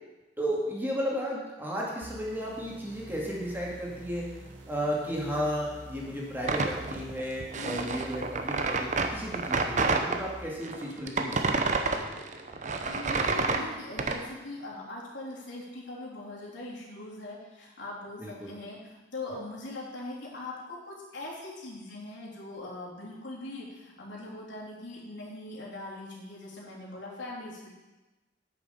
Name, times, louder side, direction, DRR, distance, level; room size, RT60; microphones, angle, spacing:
voice 1, 0.4-4.3 4.7-12.1 18.2-18.6, equal, 10° right, -4 dB, 2.2 m, -34 dB
sound 1, 2.0-10.5, right 1 dB, 75° right, 1.6 m, -48 dB
sound 2, 6.4-10.2 10.6-14.2, right 3 dB, 40° right, 0.8 m, -29 dB
voice 2, 7.5-7.9 12.8-27.7, left 2 dB, 85° left, -5 dB, 3.3 m, -41 dB
9.2 x 6.7 x 6.9 m, 1.1 s
head